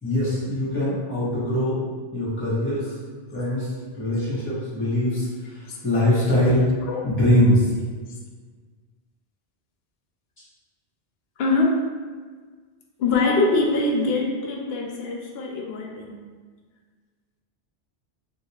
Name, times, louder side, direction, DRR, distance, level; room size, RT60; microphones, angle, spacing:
voice 1, 0.0-1.8 2.1-2.9 3.3-3.7 3.9-6.6 7.0-7.7, left 1 dB, 10° left, -10 dB, 1.2 m, -22 dB
voice 2, 11.4-11.8 13.0-16.2, left 3 dB, 65° left, 0 dB, 0.8 m, -23 dB
2.9 x 2.8 x 2.8 m, 1.5 s
omnidirectional pair, 1.2 m